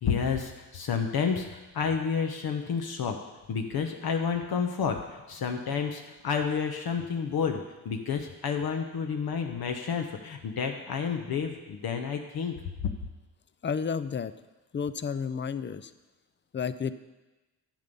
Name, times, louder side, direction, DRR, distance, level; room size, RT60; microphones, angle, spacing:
voice 1, 0.0-3.2 3.5-12.6 12.8-12.9, left 6 dB, 60° left, 4 dB, 1.0 m, -30 dB
voice 2, 13.6-14.3 14.7-15.9 16.5-16.9, left 6 dB, 30° left, 14 dB, 0.5 m, -31 dB
10.5 x 7.0 x 5.4 m, 1.1 s
cardioid pair, 75°, 41 cm